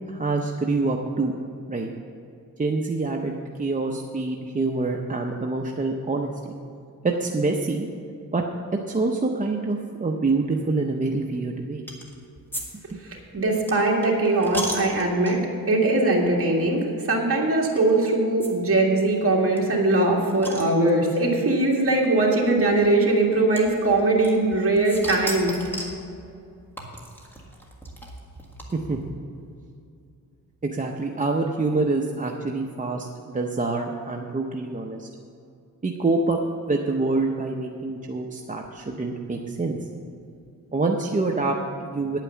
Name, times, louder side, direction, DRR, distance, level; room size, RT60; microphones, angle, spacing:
voice 1, 0.1-1.3 1.7-1.9 2.6-3.3 3.6-6.5 7.0-7.9 8.3-8.4 8.9-11.8 28.7-29.0 30.6-35.1 35.8-36.4 36.7-39.8 40.7-42.2, right 3 dB, 20° right, 1 dB, 0.6 m, -26 dB
sound 1, 11.9-12.2 12.5-12.6 12.9-15.6 16.2-16.4 16.6-16.7 17.8-17.9 18.4-18.5 18.8-18.9 19.1-19.2 19.6-21.2 22.1-22.2 23.6-24.6 24.9-26.0 26.8-29.0, right 1 dB, 5° left, 1.7 m, -35 dB
voice 2, 13.0-15.4 15.7-25.5, right 2 dB, 40° right, -2 dB, 2.2 m, -21 dB
9.6 x 9.0 x 7.1 m, 2.5 s
wide cardioid pair, 150°, 36 cm